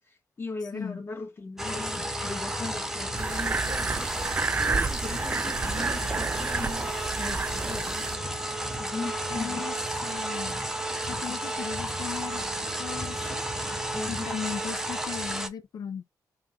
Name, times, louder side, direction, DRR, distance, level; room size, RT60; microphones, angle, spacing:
voice 1, 0.1-8.0 8.8-9.7 11.3-11.6 13.9-14.4, left 3 dB, 35° left, 1.6 m, -39 dB
voice 2, 0.6-1.0 9.3-10.6 11.0-13.5 14.1-16.1, left 8 dB, 70° left, 0.8 m, -37 dB
sound 1, 1.6-15.5, right 1 dB, 5° right, 0.8 m, -32 dB
sound 2, 3.2-8.2, right 4 dB, 30° right, 0.4 m, -30 dB
3.8 x 3.3 x 3.6 m
cardioid pair, 115°, 7 cm